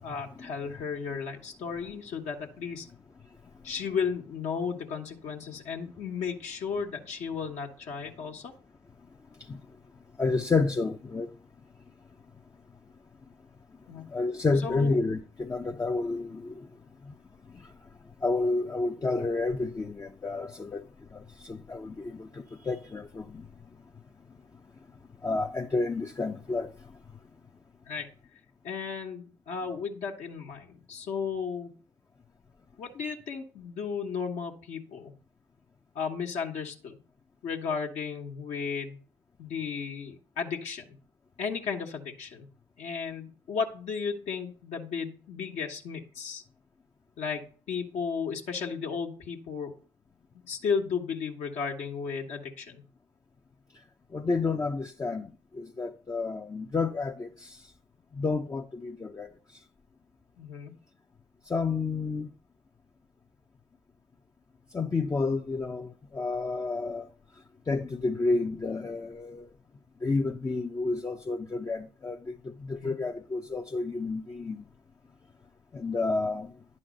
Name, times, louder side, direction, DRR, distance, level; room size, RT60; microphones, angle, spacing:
voice 1, 0.0-2.9 3.6-8.5 13.9-14.1 14.6-15.0 27.9-28.1 28.6-31.7 32.8-35.1 35.9-37.0 37.4-39.0 39.4-40.9 41.4-42.5 42.8-46.4 47.2-49.7 50.3-52.8 60.4-60.7 72.8-73.0, left 6 dB, 60° left, 1.4 m, -34 dB
voice 2, 10.2-11.3 14.1-16.7 17.1-17.2 18.2-20.8 21.4-23.4 25.2-26.7 54.1-55.3 55.6-57.6 58.1-59.3 61.5-62.3 64.7-65.9 66.1-67.1 67.7-69.5 70.0-72.2 72.6-74.6 75.7-76.5, left 3 dB, 25° left, 0.7 m, -30 dB
10.0 x 4.2 x 6.4 m
hypercardioid pair, 55°, 13 cm